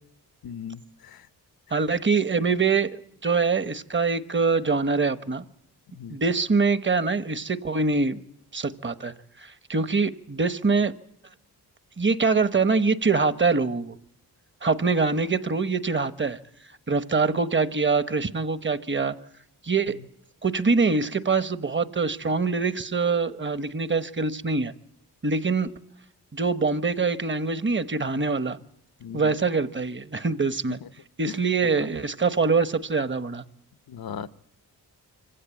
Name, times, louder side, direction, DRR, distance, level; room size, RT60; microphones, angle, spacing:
voice 1, 0.4-0.8 5.9-6.2 29.0-29.3 33.9-34.3, left 8 dB, 70° left, 0.9 m, -36 dB
voice 2, 1.7-5.4 6.1-8.2 8.5-9.1 9.4-10.9 12.0-14.0 14.6-16.4 16.9-19.2 19.6-20.0 20.4-24.7 25.2-25.7 26.3-28.6 29.1-30.8 31.2-33.4, right 4 dB, 30° right, 1.1 m, -24 dB
25.0 x 15.5 x 9.0 m
cardioid pair, 80°, 38 cm